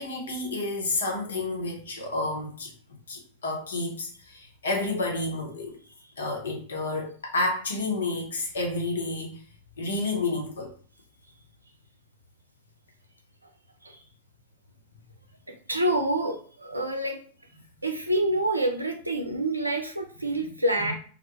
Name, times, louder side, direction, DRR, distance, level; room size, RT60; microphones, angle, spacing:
voice 1, 0.0-2.7 3.1-5.8 6.2-9.4 9.8-10.7 20.8-20.9, left 2 dB, 70° left, 1 dB, 0.8 m, -30 dB
voice 2, 15.7-17.2 17.8-20.9, right 1 dB, 85° right, 3 dB, 0.5 m, -27 dB
2.2 x 2.1 x 2.9 m, 0.43 s
figure-of-eight pair, 90°, 0 cm